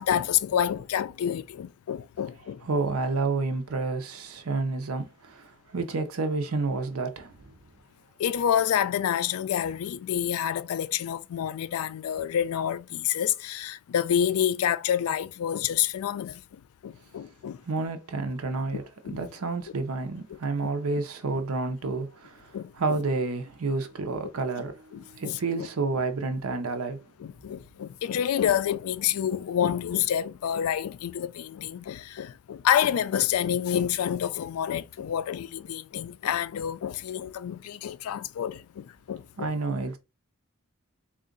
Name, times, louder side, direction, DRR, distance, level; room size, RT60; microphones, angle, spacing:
voice 1, 0.0-2.6 8.2-16.4 16.8-17.6 19.0-19.2 21.3-21.4 22.5-23.0 24.9-25.4 27.2-39.5, left 9 dB, 85° left, 0.3 m, -28 dB
voice 2, 2.7-7.5 17.6-18.8 19.1-27.0 39.4-40.0, right 3 dB, 90° right, 0.7 m, -30 dB
3.7 x 2.4 x 3.7 m
head